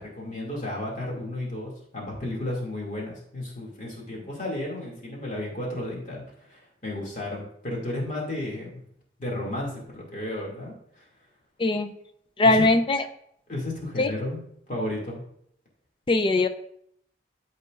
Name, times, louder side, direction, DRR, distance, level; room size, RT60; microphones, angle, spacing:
voice 1, 0.0-8.8 9.2-11.0 12.4-12.7 13.5-14.4 14.7-15.2, left 1 dB, 45° left, -2 dB, 2.3 m, -33 dB
voice 2, 11.6-11.9 12.4-13.0 14.0-14.1 16.1-16.5, left 2 dB, 30° left, 9 dB, 0.4 m, -20 dB
12.5 x 4.3 x 2.4 m, 0.70 s
head